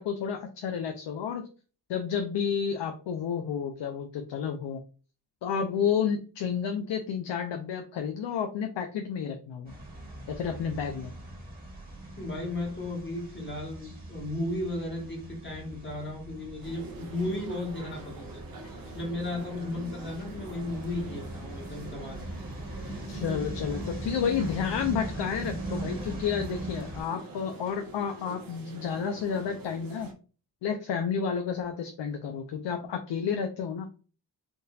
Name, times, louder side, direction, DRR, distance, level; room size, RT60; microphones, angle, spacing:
voice 1, 0.0-1.5 1.9-4.8 5.4-9.7 10.4-11.1 23.1-30.1 30.6-33.9, left 7 dB, 80° left, 5 dB, 0.6 m, -31 dB
sound 1, 9.7-27.0, right 1 dB, 20° right, 1.4 m, -40 dB
voice 2, 12.2-18.4 18.9-22.2, left 2 dB, 25° left, -1 dB, 1.2 m, -35 dB
sound 2, 16.6-30.1, right 2 dB, 50° right, 0.8 m, -45 dB
3.8 x 2.6 x 2.3 m, 0.37 s
wide cardioid pair, 105°, 42 cm